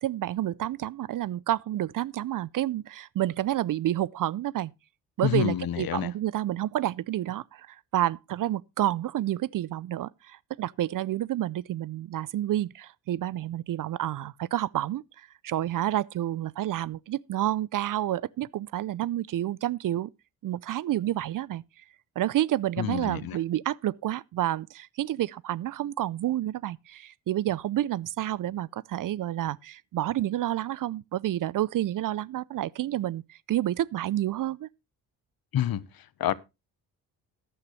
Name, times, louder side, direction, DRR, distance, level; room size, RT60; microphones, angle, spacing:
voice 1, 0.0-4.7 5.2-20.1 20.4-21.6 22.2-34.7, right 13 dB, 50° right, 0.5 m, -29 dB
voice 2, 5.2-6.1 22.8-23.4 35.5-36.3, left 11 dB, 60° left, 1.0 m, -28 dB
14.5 x 10.0 x 3.1 m
supercardioid pair, 65°, 41 cm